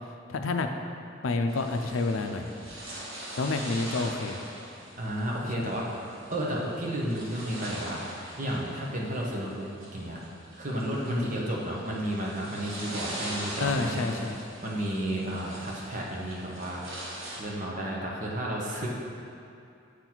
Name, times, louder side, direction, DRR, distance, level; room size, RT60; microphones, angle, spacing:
voice 1, 0.3-0.7 1.2-2.5 3.4-4.4 5.6-5.7 11.1-11.3 13.6-14.6, left 3 dB, 80° left, 5 dB, 0.5 m, -29 dB
sound 1, 1.5-17.4, right 1 dB, 85° right, 1.6 m, -42 dB
voice 2, 5.0-6.0 6.3-8.0 8.4-10.2 10.6-14.1 14.6-16.8 17.4-18.9, right 1 dB, 40° right, -3 dB, 1.0 m, -32 dB
7.9 x 4.0 x 4.5 m, 2.5 s
head